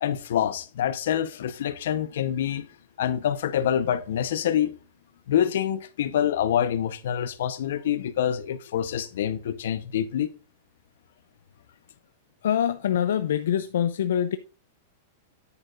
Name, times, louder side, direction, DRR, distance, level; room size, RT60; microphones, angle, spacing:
voice 1, 0.0-2.7 3.0-4.7 5.3-10.3, left 10 dB, 75° left, 0.9 m, -26 dB
voice 2, 12.4-14.4, left 9 dB, 90° left, 0.5 m, -24 dB
9.8 x 8.5 x 2.5 m
supercardioid pair, 170°, 0 cm